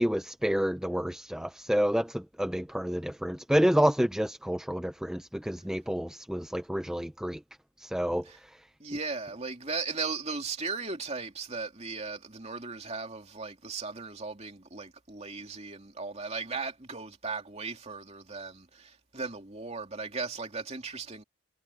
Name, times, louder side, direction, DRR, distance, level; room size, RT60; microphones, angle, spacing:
voice 1, 0.0-7.4 7.8-8.2, equal, 5° right, 0.4 m, -29 dB
voice 2, 8.8-21.2, right 4 dB, 30° right, 2.8 m, -37 dB
head